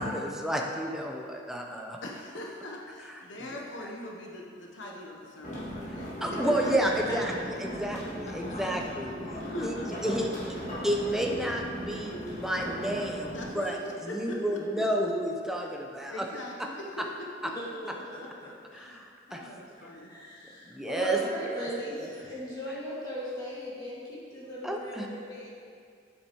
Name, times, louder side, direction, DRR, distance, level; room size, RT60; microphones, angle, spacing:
voice 1, 0.0-2.0 3.4-3.6 6.2-9.1 9.6-10.3 10.8-13.8 14.0-16.2 18.7-19.4 20.6-21.7 22.0-22.1 24.6-25.1, right 1 dB, ahead, 0 dB, 0.6 m, -31 dB
voice 2, 2.0-6.8 7.8-7.9 8.2-8.3 9.4-9.9 13.3-14.8 16.1-17.5 18.2-18.3 18.7-20.2 21.2-21.3, left 1 dB, 80° left, 0 dB, 0.9 m, -41 dB
sound 1, 5.4-13.5, equal, 40° left, 2.0 m, -37 dB
voice 3, 6.4-7.4 11.0-11.1 17.6-18.2 20.1-24.0 24.3-25.5, equal, 20° left, -7 dB, 1.9 m, -38 dB
9.0 x 8.0 x 3.0 m, 2.2 s
head